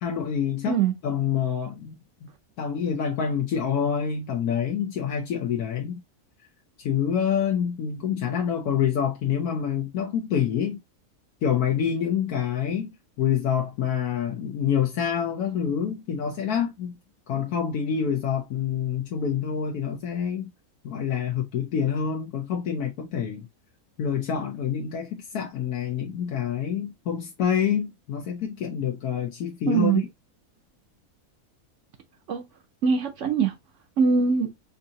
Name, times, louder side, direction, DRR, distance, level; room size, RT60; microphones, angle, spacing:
voice 1, 0.0-2.0 2.6-6.0 6.8-10.8 11.4-12.9 13.2-16.9 17.3-20.5 20.8-23.5 24.0-30.0, left 8 dB, 80° left, 1.2 m, -27 dB
voice 2, 29.7-30.0 32.3-32.4 32.8-33.5 34.0-34.5, right 5 dB, 65° right, 0.9 m, -22 dB
4.6 x 2.6 x 2.7 m
omnidirectional pair, 1.6 m